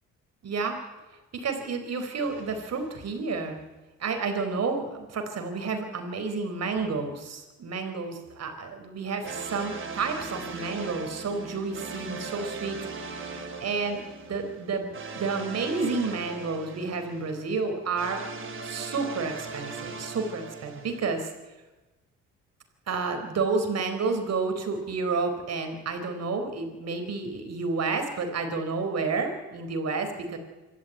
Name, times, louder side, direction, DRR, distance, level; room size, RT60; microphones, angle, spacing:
voice 1, 0.4-0.8 1.3-3.6 4.0-12.8 13.1-14.0 14.2-18.2 18.6-21.3 22.9-30.4, right 4 dB, 60° right, 6 dB, 4.7 m, -30 dB
sound 1, 2.2-3.4 9.2-21.2, right 4 dB, 40° right, 3.8 m, -39 dB
25.5 x 14.0 x 9.4 m, 1.1 s
cardioid pair, 90°, 30 cm